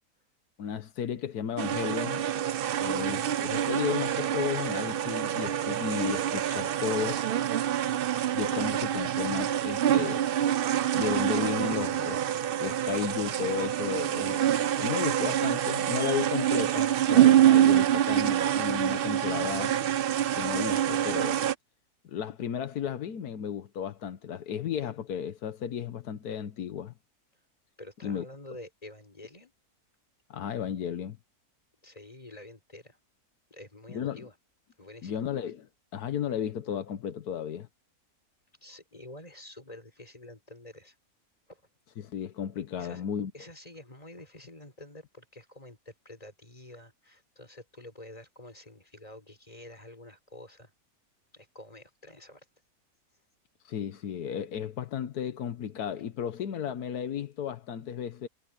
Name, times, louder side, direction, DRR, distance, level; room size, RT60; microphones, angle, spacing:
voice 1, 0.6-2.3 2.8-7.2 8.3-10.6 10.9-12.2 12.6-19.7 20.3-21.4 22.1-26.9 28.0-28.2 30.3-31.2 33.9-34.2 35.0-37.7 42.0-43.3 53.6-58.3, left 8 dB, 85° left, 1.5 m, -34 dB
sound 1, 1.6-21.5, right 11 dB, 65° right, 0.5 m, -26 dB
voice 2, 27.8-29.5 31.8-33.0 33.5-34.4 34.8-35.2 38.6-41.0 41.5-41.6 42.8-43.0 43.3-50.7 51.3-52.5, left 1 dB, 25° left, 4.7 m, -48 dB
omnidirectional pair, 1.6 m